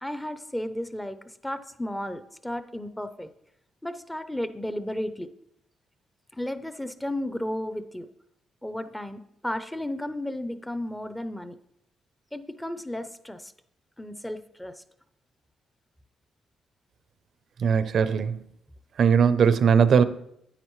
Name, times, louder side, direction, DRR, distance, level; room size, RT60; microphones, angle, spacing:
voice 1, 0.0-3.3 3.8-5.3 6.3-8.1 8.6-11.6 12.3-13.5 14.0-14.8, left 1 dB, 5° left, 0.6 m, -33 dB
voice 2, 17.6-18.4 19.0-20.0, right 6 dB, 60° right, 0.5 m, -19 dB
9.9 x 8.8 x 3.1 m
cardioid pair, 90°, 0 cm